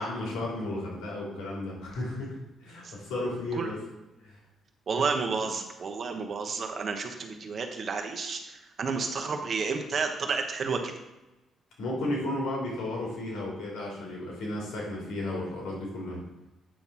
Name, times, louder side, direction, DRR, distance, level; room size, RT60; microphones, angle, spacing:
voice 1, 0.0-2.4 2.6-3.8 4.2-4.4 11.8-16.2, left 1 dB, 85° left, -4 dB, 3.0 m, -33 dB
voice 2, 4.9-10.9, right 4 dB, 50° right, 4 dB, 1.1 m, -31 dB
8.7 x 3.8 x 6.0 m, 1.0 s
cardioid pair, 90°, 0 cm